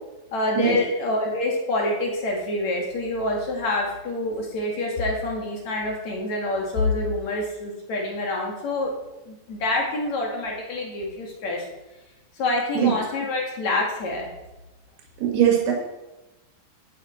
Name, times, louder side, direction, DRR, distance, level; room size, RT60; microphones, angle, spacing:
voice 1, 0.3-8.9 9.3-11.6 12.4-14.3, left 2 dB, 50° left, -1 dB, 2.6 m, -26 dB
voice 2, 15.2-15.7, right 9 dB, 75° right, -1 dB, 4.1 m, -20 dB
11.5 x 9.6 x 4.4 m, 1.0 s
omnidirectional pair, 4.8 m